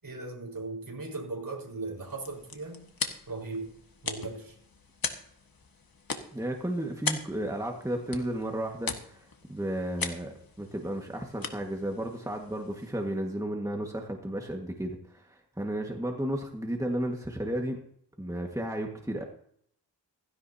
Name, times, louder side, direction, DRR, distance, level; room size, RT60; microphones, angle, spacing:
voice 1, 0.0-2.9 3.3-3.7 4.0-4.6, right 3 dB, 55° right, 0 dB, 4.9 m, -38 dB
sound 1, 1.9-13.2, left 4 dB, 55° left, 1.7 m, -40 dB
voice 2, 6.3-17.8 18.2-19.2, right 1 dB, 10° right, 1 dB, 1.8 m, -33 dB
16.0 x 16.0 x 2.9 m, 0.66 s
wide cardioid pair, 70°, 41 cm